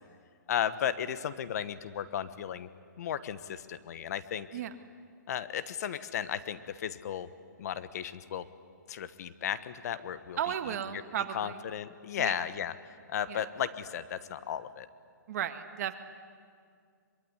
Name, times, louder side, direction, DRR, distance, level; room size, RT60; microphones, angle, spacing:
voice 1, 0.5-2.7 3.0-4.5 5.3-7.3 7.6-8.5 8.9-10.4 11.3-12.7 13.1-14.9, left 9 dB, 55° left, 13 dB, 1.2 m, -34 dB
voice 2, 10.4-11.6 12.2-12.4 13.3-13.5 15.3-16.0, right 10 dB, 50° right, 8 dB, 1.8 m, -35 dB
23.5 x 23.0 x 9.9 m, 2.2 s
hypercardioid pair, 145°, 11 cm